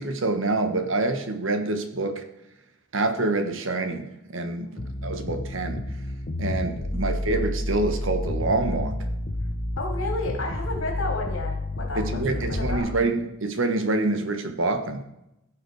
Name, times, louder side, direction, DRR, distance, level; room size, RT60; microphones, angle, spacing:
voice 1, 0.0-2.2 2.9-5.8 6.4-9.0 11.9-15.0, right 2 dB, 70° right, 7 dB, 1.3 m, -26 dB
voice 2, 4.5-4.8 9.8-12.9, left 2 dB, 70° left, 0 dB, 2.9 m, -32 dB
sound 1, 4.8-12.8, left 1 dB, 45° left, 1.0 m, -30 dB
16.5 x 5.7 x 4.8 m, 0.87 s
head